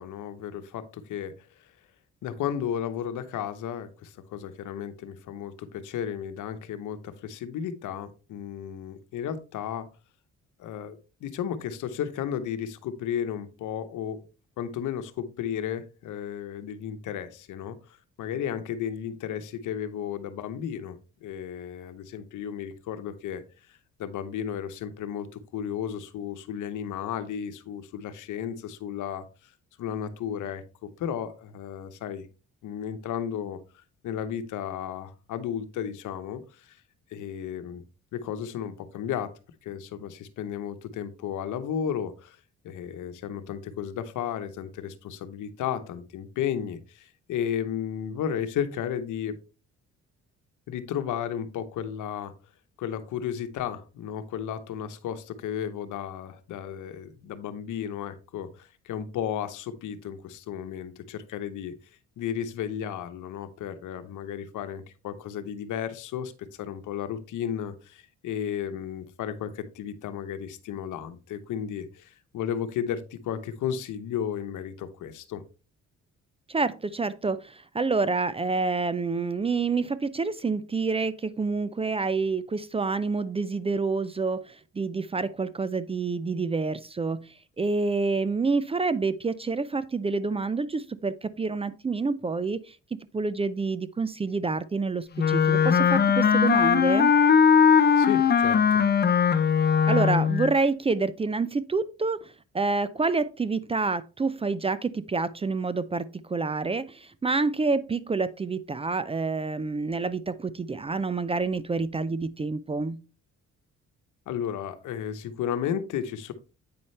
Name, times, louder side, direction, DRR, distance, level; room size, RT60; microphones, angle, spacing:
voice 1, 0.0-1.3 2.2-9.9 10.6-14.2 14.6-17.8 18.2-23.4 24.0-29.2 29.8-30.6 31.0-32.3 32.6-36.8 37.1-37.8 38.1-39.3 39.6-42.4 42.6-49.4 50.7-52.3 52.8-61.7 62.2-66.3 66.6-75.4 98.0-98.8 114.3-116.3, left 9 dB, 80° left, 1.0 m, -33 dB
voice 2, 76.5-84.4 84.8-87.2 87.6-92.6 93.1-97.1 99.9-102.2 102.5-113.0, right 4 dB, 20° right, 0.4 m, -28 dB
Wind instrument woodwind instrument, 95.2-100.5, left 7 dB, 35° left, 0.7 m, -20 dB
8.6 x 5.4 x 3.2 m
cardioid pair, 90°, 30 cm